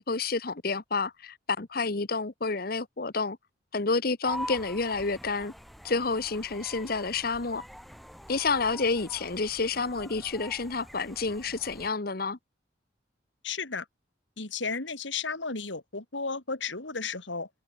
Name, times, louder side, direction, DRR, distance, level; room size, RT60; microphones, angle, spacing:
voice 1, 0.0-3.4 3.7-5.5 5.8-7.6 8.3-12.4, left 4 dB, 50° left, 1.1 m, -29 dB
sound 1, 4.2-11.9, equal, ahead, 3.1 m, -44 dB
voice 2, 13.4-13.8 14.4-17.5, left 4 dB, 80° left, 3.0 m, -33 dB
head